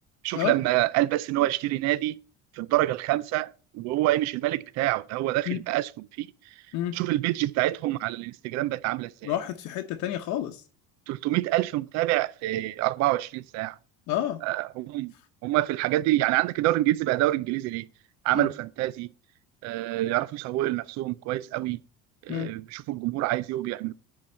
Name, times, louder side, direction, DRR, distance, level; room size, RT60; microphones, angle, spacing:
voice 1, 0.2-2.2 2.5-5.9 6.2-6.3 6.9-9.3 11.1-13.8 14.4-15.1 15.4-17.9 18.2-19.1 19.6-21.8 22.3-23.9, right 16 dB, 55° right, 0.5 m, -26 dB
voice 2, 9.2-10.6 14.1-14.4 18.3-18.5 22.3-22.5, left 12 dB, 60° left, 0.9 m, -29 dB
10.5 x 3.9 x 7.5 m
cardioid pair, 145°, 32 cm